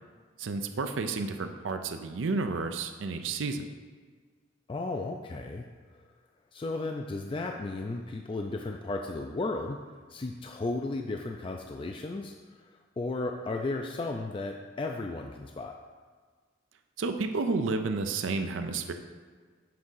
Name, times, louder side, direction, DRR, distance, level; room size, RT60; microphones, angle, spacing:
voice 1, 0.4-3.6 17.0-18.9, right 3 dB, 90° right, 7 dB, 0.5 m, -31 dB
voice 2, 4.7-5.7 6.5-9.8 10.1-15.7, left 2 dB, 25° left, 2 dB, 0.3 m, -34 dB
7.7 x 3.5 x 5.6 m, 1.5 s
head